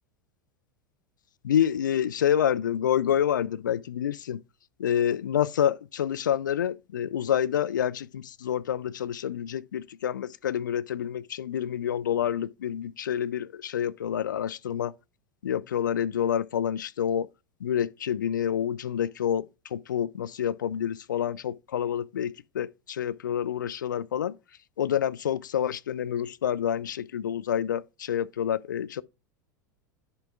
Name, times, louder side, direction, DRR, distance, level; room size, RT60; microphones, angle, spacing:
voice 1, 1.4-4.4 4.8-14.9 15.4-17.3 17.6-19.5 19.7-24.3 24.8-29.0, left 9 dB, 70° left, 0.4 m, -28 dB
11.0 x 6.7 x 2.4 m
figure-of-eight pair, 85°, 11 cm